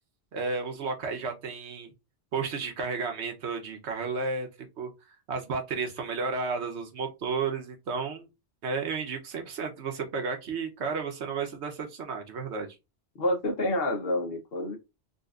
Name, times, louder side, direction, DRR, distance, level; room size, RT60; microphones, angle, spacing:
voice 1, 0.3-1.9 2.3-4.5 4.8-4.9 5.3-8.3 8.6-12.7, right 4 dB, 75° right, 1.1 m, -32 dB
voice 2, 13.1-14.8, left 1 dB, 60° left, 1.1 m, -28 dB
3.8 x 2.4 x 2.4 m
omnidirectional pair, 1.1 m